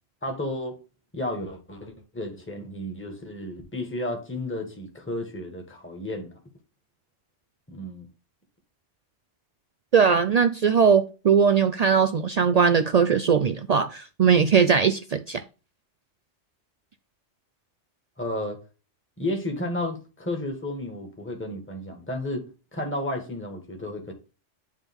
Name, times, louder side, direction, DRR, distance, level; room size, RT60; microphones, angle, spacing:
voice 1, 0.2-0.8 1.1-6.3 7.7-8.1 18.2-18.6 19.2-22.4 22.7-24.1, left 1 dB, 10° left, 1.5 m, -32 dB
voice 2, 9.9-15.4, right 6 dB, 80° right, 0.3 m, -20 dB
9.5 x 3.6 x 3.5 m
omnidirectional pair, 1.3 m